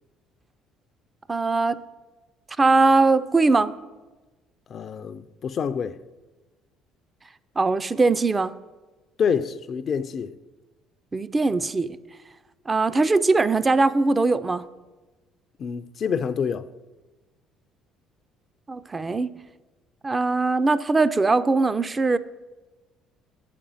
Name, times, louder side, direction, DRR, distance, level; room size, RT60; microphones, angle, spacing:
voice 1, 1.3-1.8 2.6-3.7 7.6-8.5 11.1-12.0 12.7-14.6 18.7-19.3 20.0-22.2, right 3 dB, 25° right, 0.4 m, -21 dB
voice 2, 4.7-6.0 9.2-10.3 15.6-16.7, left 7 dB, 50° left, 0.4 m, -27 dB
7.0 x 5.1 x 7.0 m
hypercardioid pair, 55°, 0 cm